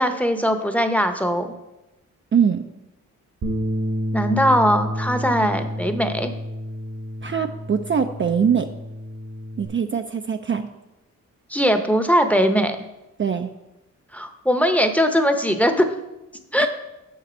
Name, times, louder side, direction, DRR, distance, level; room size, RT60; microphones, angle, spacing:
voice 1, 0.0-1.5 4.1-6.3 11.5-12.8 14.1-15.9 16.5-16.7, equal, 5° left, 7 dB, 0.8 m, -20 dB
voice 2, 2.3-2.7 7.2-8.7 9.6-10.7 13.2-13.5 16.6-16.7, right 7 dB, 40° right, 6 dB, 0.4 m, -22 dB
Bass guitar, 3.4-9.7, equal, 65° right, 1.3 m, -29 dB
7.7 x 5.9 x 4.4 m, 0.96 s
cardioid pair, 70°, 32 cm